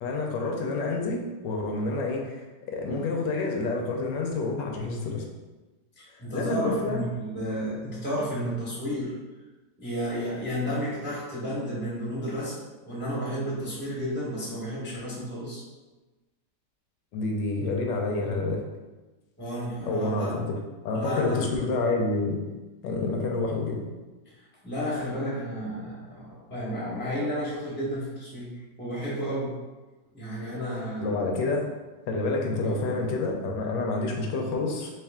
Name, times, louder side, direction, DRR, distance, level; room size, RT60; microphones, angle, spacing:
voice 1, 0.0-5.2 6.3-7.0 17.1-18.6 19.8-20.5 20.8-22.4 22.8-23.8 31.0-31.6 32.1-34.9, left 3 dB, 80° left, 1 dB, 1.2 m, -28 dB
voice 2, 6.0-9.1 9.8-12.5 12.8-15.6 19.4-20.4 20.9-21.4 24.6-28.5 28.8-29.5 30.1-31.2 32.6-32.8, equal, 10° left, -8 dB, 1.0 m, -32 dB
3.3 x 3.0 x 3.5 m, 1.2 s
omnidirectional pair, 1.9 m